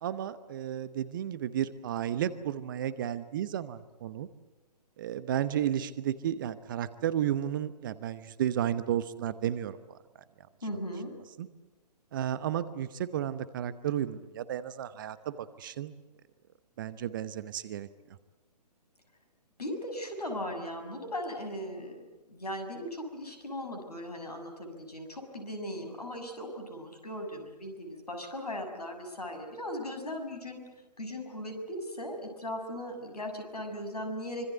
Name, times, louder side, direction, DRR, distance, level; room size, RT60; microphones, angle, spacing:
voice 1, 0.0-4.3 5.0-10.0 11.4-11.5 12.1-15.9 16.8-17.9, right 10 dB, 30° right, 15 dB, 0.9 m, -33 dB
voice 2, 10.6-11.1 19.6-22.0 22.3-30.6 31.0-34.5, left 1 dB, 70° left, 6 dB, 6.6 m, -38 dB
25.5 x 24.5 x 8.1 m, 1.1 s
figure-of-eight pair, 130°, 21 cm